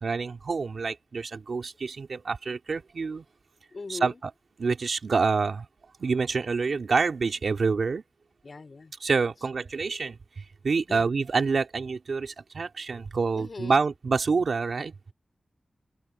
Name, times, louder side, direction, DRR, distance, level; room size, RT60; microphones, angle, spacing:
voice 1, 0.0-3.2 3.9-4.1 4.6-5.7 6.0-8.0 9.0-14.9, right 4 dB, 70° right, 2.9 m, -27 dB
voice 2, 3.7-4.2 8.4-8.9 10.9-11.1 13.3-13.9, left 3 dB, 50° left, 3.9 m, -40 dB
open air
wide cardioid pair, 115°, 0 cm